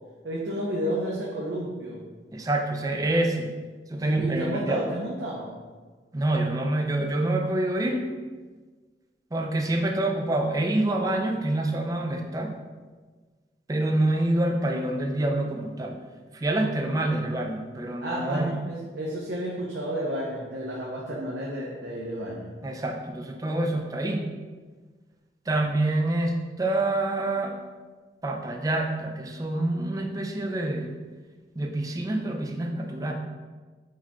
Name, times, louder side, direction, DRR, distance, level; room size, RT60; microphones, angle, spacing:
voice 1, 0.2-2.0 4.1-5.5 16.6-16.9 18.0-22.5, right 1 dB, 80° right, -4 dB, 0.7 m, -31 dB
voice 2, 2.3-3.5 3.9-4.8 6.1-8.0 9.3-12.5 13.7-16.0 16.3-18.5 22.6-24.3 25.5-27.5 28.2-31.0 31.6-33.1, right 1 dB, 20° right, 2 dB, 0.4 m, -26 dB
4.9 x 4.1 x 2.2 m, 1.4 s
head